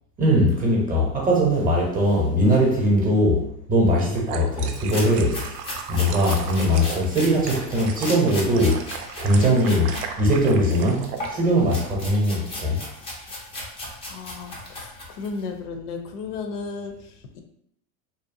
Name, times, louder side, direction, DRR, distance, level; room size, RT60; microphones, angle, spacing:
voice 1, 0.2-3.4 3.7-5.6 5.9-8.8 9.2-9.9 10.2-12.8, equal, 20° right, -3 dB, 0.7 m, -20 dB
sound 1, 3.8-11.3, right 7 dB, 75° right, 0.5 m, -36 dB
sound 2, 4.6-10.1 10.4-15.4, left 1 dB, 15° left, 0.3 m, -36 dB
voice 2, 14.0-17.4, left 4 dB, 75° left, 5 dB, 0.6 m, -34 dB
2.7 x 2.1 x 2.6 m, 0.75 s
supercardioid pair, 120°, 46 cm